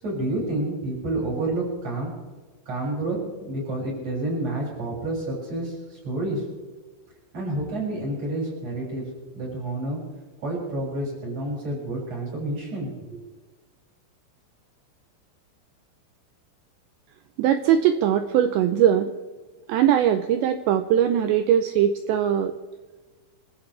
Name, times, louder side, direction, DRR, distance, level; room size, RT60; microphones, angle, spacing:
voice 1, 0.0-2.1 2.7-6.4 7.3-9.0 9.3-10.0 10.4-13.2, right 2 dB, 30° right, -4 dB, 7.5 m, -29 dB
voice 2, 17.4-19.1 19.7-22.5, right 10 dB, 85° right, 8 dB, 2.5 m, -20 dB
29.5 x 13.0 x 3.3 m, 1.4 s
omnidirectional pair, 5.8 m